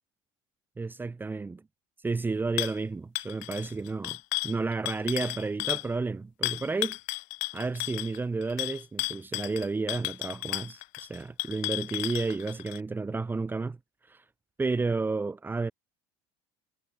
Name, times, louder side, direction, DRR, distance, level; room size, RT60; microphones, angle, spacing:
voice 1, 0.8-1.6 2.0-4.2 4.4-7.0 7.5-13.8 14.1-14.2 14.6-15.7, right 3 dB, 15° right, 1.5 m, -31 dB
sound 1, 2.6-2.8 3.2-5.9 6.4-12.8, left 27 dB, 70° left, 4.4 m, -33 dB
supercardioid pair, 120°, 14 cm